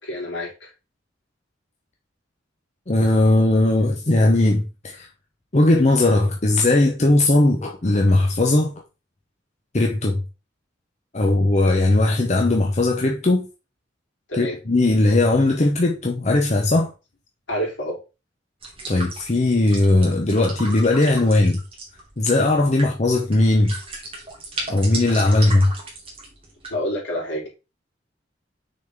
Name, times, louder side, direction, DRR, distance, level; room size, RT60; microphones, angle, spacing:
voice 1, 0.0-0.7 14.3-14.6 17.5-18.0 25.4-25.5 26.7-27.5, equal, 75° left, 3.6 m, -28 dB
voice 2, 2.9-5.1 5.5-8.7 9.7-10.2 11.1-13.5 14.3-16.9 18.9-21.6 22.2-23.7 24.7-25.7, left 2 dB, 35° left, 0.8 m, -18 dB
sound 1, 18.6-26.7, right 2 dB, 30° right, 2.1 m, -36 dB
6.4 x 4.2 x 3.5 m
head